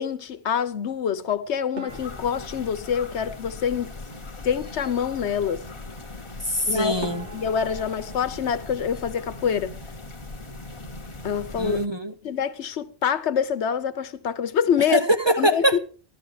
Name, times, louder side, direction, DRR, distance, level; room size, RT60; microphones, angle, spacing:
voice 1, 0.0-3.9 4.4-5.6 6.7-6.9 7.3-9.8 11.2-11.8 12.2-15.0 15.4-15.8, left 8 dB, 85° left, 1.2 m, -26 dB
sound 1, 1.8-4.2 6.5-6.6 7.0-9.8 10.0-10.8 11.1-11.3 11.6-11.7 12.4-12.7, equal, 85° right, 2.4 m, -43 dB
sound 2, 1.9-11.9, left 2 dB, 30° left, 1.2 m, -39 dB
voice 2, 6.4-7.3 11.6-12.1 14.9-15.8, right 1 dB, 30° right, 0.6 m, -23 dB
14.5 x 12.0 x 4.8 m
omnidirectional pair, 1.1 m